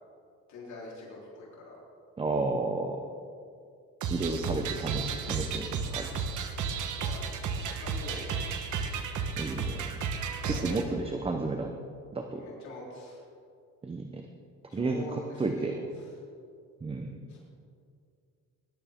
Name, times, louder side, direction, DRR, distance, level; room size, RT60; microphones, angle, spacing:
voice 1, 0.5-1.8 6.8-8.4 10.4-11.1 12.3-13.2 14.7-16.0 17.3-17.4, left 2 dB, 60° left, -6 dB, 4.0 m, -44 dB
voice 2, 2.2-3.0 4.1-6.1 9.4-9.9 10.6-11.7 12.1-12.4 13.8-14.3 14.7-15.8 16.8-17.3, right 3 dB, 15° right, 4 dB, 0.8 m, -32 dB
sound 1, 4.0-10.8, right 5 dB, 65° right, 1.3 m, -33 dB
20.5 x 11.5 x 3.7 m, 2.4 s
cardioid pair, 125°, 32 cm